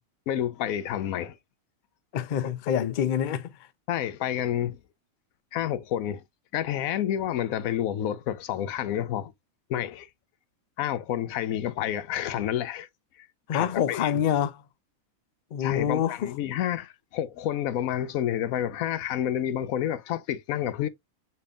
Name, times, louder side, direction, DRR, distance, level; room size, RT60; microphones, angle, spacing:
voice 1, 0.3-1.4 2.7-2.9 3.9-4.8 5.5-6.2 6.5-9.3 9.7-10.1 10.8-12.9 13.2-13.3 13.5-14.1 15.6-20.9, left 11 dB, 90° left, 1.0 m, -29 dB
voice 2, 2.1-3.5 13.5-14.6 15.5-16.3, left 9 dB, 55° left, 0.5 m, -26 dB
5.1 x 4.2 x 2.3 m
omnidirectional pair, 1.4 m